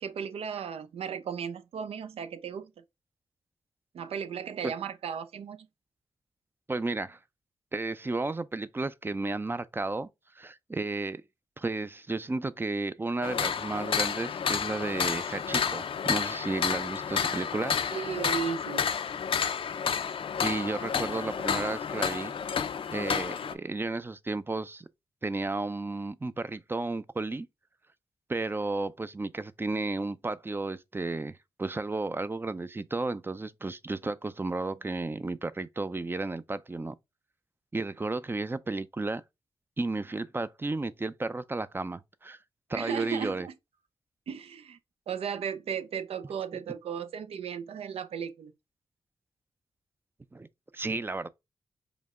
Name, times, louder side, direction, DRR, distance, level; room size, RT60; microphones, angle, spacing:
voice 1, 0.0-2.7 3.9-5.7 17.9-18.9 42.7-43.5 44.3-44.8 45.1-48.5, right 7 dB, 80° right, 0.5 m, -35 dB
voice 2, 6.7-7.2 7.7-10.1 10.4-11.2 11.6-17.8 20.4-22.3 22.9-24.9 25.2-27.5 28.3-31.3 31.6-37.0 37.7-39.2 39.8-42.4 42.7-43.5 46.5-46.6 50.3-50.5 50.7-51.3, right 3 dB, 20° right, 0.4 m, -33 dB
sound 1, 13.2-23.5, left 7 dB, 60° left, 0.5 m, -30 dB
5.0 x 2.2 x 3.5 m
cardioid pair, 60°, 10 cm